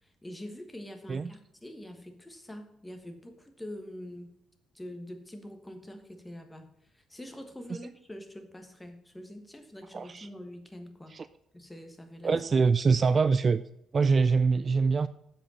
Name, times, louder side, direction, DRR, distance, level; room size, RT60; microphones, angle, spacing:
voice 1, 0.0-4.3 4.7-11.2 11.5-12.3, left 1 dB, 10° left, 1.4 m, -45 dB
voice 2, 9.9-10.3 11.1-11.3 12.2-13.6 13.9-15.1, right 4 dB, 40° right, 0.3 m, -24 dB
7.7 x 5.1 x 7.1 m
cardioid pair, 90°, 0 cm